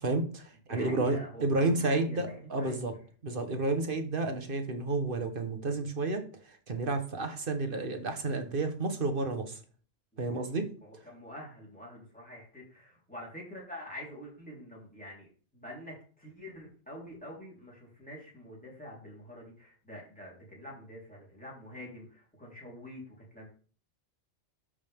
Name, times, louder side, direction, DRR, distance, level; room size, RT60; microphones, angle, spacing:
voice 1, 0.0-2.9 3.2-9.6 10.2-10.7, right 2 dB, 55° right, 7 dB, 1.4 m, -31 dB
voice 2, 0.7-2.9 10.3-10.6 10.8-23.5, equal, 5° left, -4 dB, 3.8 m, -46 dB
12.5 x 5.1 x 3.6 m, 0.40 s
omnidirectional pair, 1.1 m